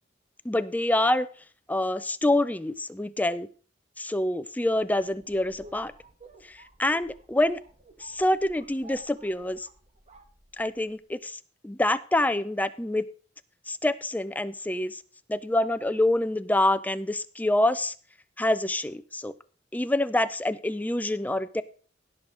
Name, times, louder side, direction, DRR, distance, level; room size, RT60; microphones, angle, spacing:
voice 1, 0.4-1.3 1.7-3.5 4.0-5.9 6.4-7.6 8.0-9.7 10.6-13.0 13.7-15.0 15.3-17.9 18.4-19.3 19.7-21.6, left 1 dB, 10° left, 13 dB, 0.5 m, -26 dB
sound 1, 4.7-11.0, right 2 dB, 35° right, 1.2 m, -53 dB
17.0 x 6.3 x 3.8 m, 0.42 s
head